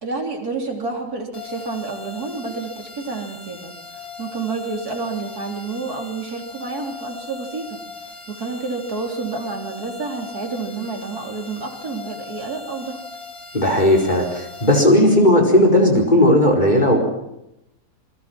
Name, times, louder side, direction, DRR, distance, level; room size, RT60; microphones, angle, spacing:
voice 1, 0.0-13.0, right 4 dB, 65° right, 2 dB, 4.0 m, -29 dB
sound 1, 1.3-14.8, left 4 dB, 70° left, 3.6 m, -38 dB
voice 2, 13.5-17.0, left 1 dB, 25° left, 2 dB, 4.9 m, -15 dB
27.0 x 22.5 x 6.1 m, 0.86 s
omnidirectional pair, 1.7 m